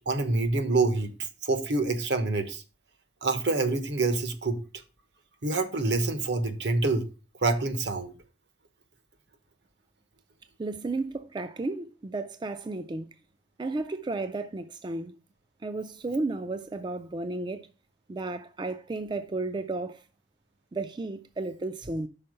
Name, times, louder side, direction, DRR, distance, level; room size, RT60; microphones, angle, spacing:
voice 1, 0.1-1.1 1.4-2.6 3.2-4.6 5.4-7.1 7.4-8.1, right 3 dB, 70° right, 1.1 m, -26 dB
voice 2, 10.6-13.1 13.6-15.1 15.6-17.7 18.1-20.0 20.7-22.1, right 2 dB, 25° right, 0.4 m, -33 dB
5.7 x 4.5 x 6.4 m
head